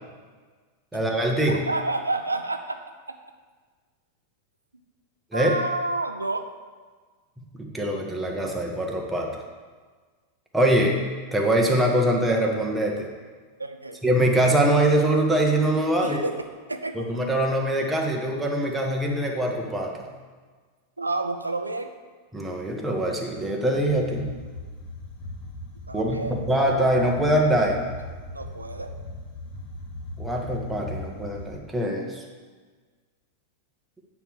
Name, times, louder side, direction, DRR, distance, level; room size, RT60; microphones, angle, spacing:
voice 1, 0.9-1.6 5.3-5.5 7.4-9.4 10.5-10.9 11.3-13.1 14.0-16.2 16.9-20.1 22.3-24.3 25.9-27.8 30.2-32.2, right 1 dB, 5° right, -1 dB, 1.5 m, -23 dB
voice 2, 1.5-2.8 5.3-6.5 13.6-14.0 16.0-16.4 16.7-17.1 21.0-21.9 25.9-26.4 28.3-28.9, right 2 dB, 80° right, 7 dB, 0.7 m, -29 dB
sound 1, 23.7-31.5, left 1 dB, 45° left, 2.1 m, -38 dB
9.1 x 4.7 x 7.3 m, 1.5 s
figure-of-eight pair, 90°, 0 cm